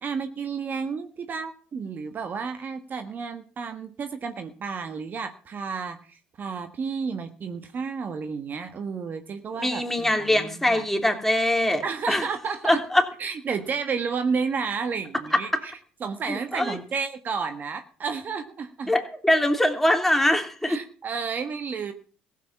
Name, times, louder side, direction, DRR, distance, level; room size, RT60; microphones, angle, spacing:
voice 1, 0.0-10.8 11.8-12.8 13.2-15.7 16.0-18.9 20.7-21.9, right 5 dB, 40° right, 8 dB, 1.6 m, -31 dB
voice 2, 9.6-12.2 12.7-13.0 15.3-15.6 16.3-16.8 18.9-20.8, left 1 dB, 5° left, 4 dB, 2.9 m, -23 dB
15.5 x 8.2 x 7.1 m, 0.41 s
supercardioid pair, 75°, 5 cm